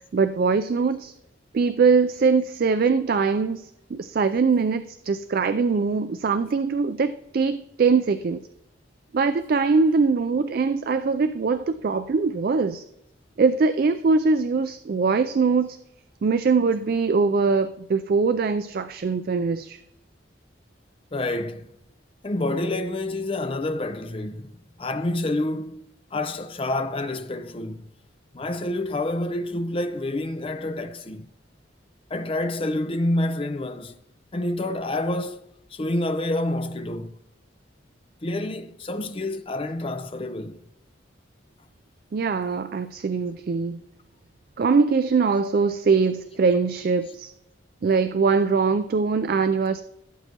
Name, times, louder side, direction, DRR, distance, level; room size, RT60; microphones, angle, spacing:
voice 1, 0.1-1.1 1.5-3.6 3.9-8.4 9.1-12.8 13.4-15.8 16.2-19.8 42.1-43.8 44.6-47.3 47.8-49.8, right 4 dB, 50° right, 0.3 m, -22 dB
voice 2, 21.1-21.7 22.2-27.9 28.3-31.3 32.1-34.0 34.3-37.2 38.2-40.6, left 1 dB, 30° left, 0.5 m, -28 dB
16.0 x 7.9 x 2.9 m
head